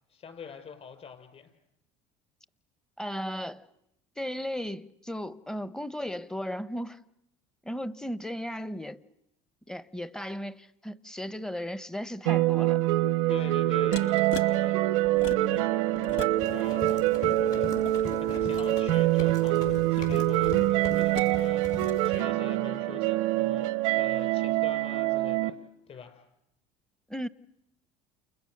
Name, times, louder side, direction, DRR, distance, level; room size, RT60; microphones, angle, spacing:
voice 1, 0.1-1.5 13.3-14.8 15.3-25.6 25.9-26.2, left 6 dB, 40° left, 6.0 m, -45 dB
voice 2, 3.0-3.6 4.2-7.0 7.6-9.0 9.7-12.8 27.1-27.3, equal, 5° left, 0.9 m, -35 dB
sound 1, 12.2-25.5, right 16 dB, 90° right, 0.9 m, -25 dB
sound 2, 13.9-14.5 15.0-15.6 15.9-16.6 17.0-18.7 19.6-21.3 21.7-21.9, left 6 dB, 80° left, 2.1 m, -41 dB
Run, 16.4-22.2, left 5 dB, 55° left, 7.5 m, -41 dB
29.5 x 29.5 x 6.7 m
supercardioid pair, 95°, 16 cm